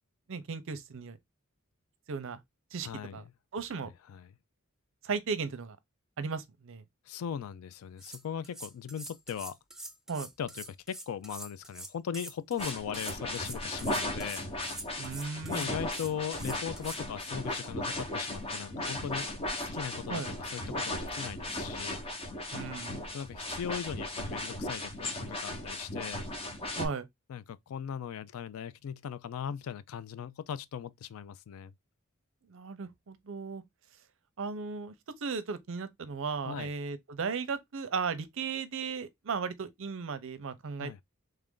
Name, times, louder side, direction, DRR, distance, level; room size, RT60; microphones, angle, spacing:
voice 1, 0.3-1.2 2.1-2.4 2.7-3.2 3.5-3.9 5.0-5.8 6.2-6.8 10.1-10.3 15.0-15.7 20.1-20.3 22.5-23.0 26.8-27.1 32.5-33.6 34.4-41.0, right 5 dB, 65° right, 0.6 m, -36 dB
voice 2, 2.8-3.2 4.1-4.3 7.1-9.6 10.4-14.4 15.5-19.3 19.6-20.2 20.5-22.0 23.1-26.3 27.3-31.7 36.4-36.7 40.8-41.0, left 8 dB, 80° left, 0.3 m, -39 dB
sound 1, 7.7-17.0, right 1 dB, ahead, 0.3 m, -45 dB
sound 2, 12.6-26.9, left 1 dB, 30° left, 0.9 m, -36 dB
3.2 x 2.5 x 3.6 m
head